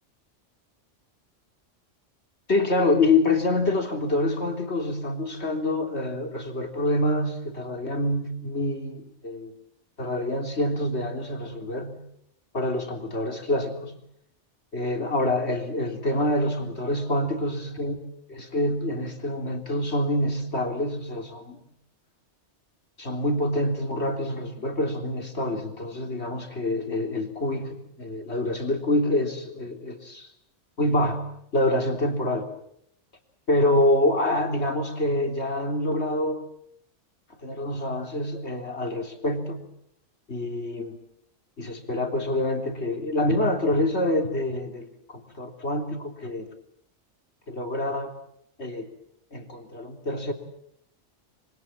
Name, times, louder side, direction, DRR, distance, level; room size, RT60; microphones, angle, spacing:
voice 1, 2.5-9.5 10.0-12.0 12.5-14.0 14.7-18.0 18.3-21.6 23.0-30.3 30.8-31.2 31.5-32.5 33.5-36.4 37.4-39.6 40.3-41.0 41.6-46.5 47.5-48.1 48.6-48.9 49.3-50.3, left 1 dB, 60° left, 5 dB, 3.8 m, -26 dB
26.0 x 25.0 x 7.6 m, 0.74 s
omnidirectional pair, 1.2 m